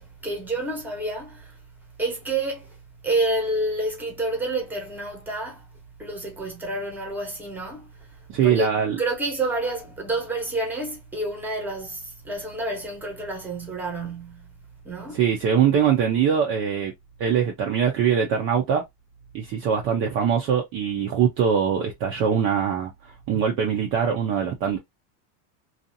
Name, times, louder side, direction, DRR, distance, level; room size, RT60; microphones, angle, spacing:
voice 1, 0.0-1.5 2.0-2.7 3.0-5.6 6.0-8.1 8.4-8.7 9.0-14.5 14.8-15.3, right 2 dB, 5° right, 0.8 m, -29 dB
voice 2, 8.3-9.0 15.1-16.9 17.2-18.8 19.3-24.8, right 7 dB, 35° right, 0.4 m, -22 dB
2.7 x 2.3 x 2.6 m
cardioid pair, 155°, 40 cm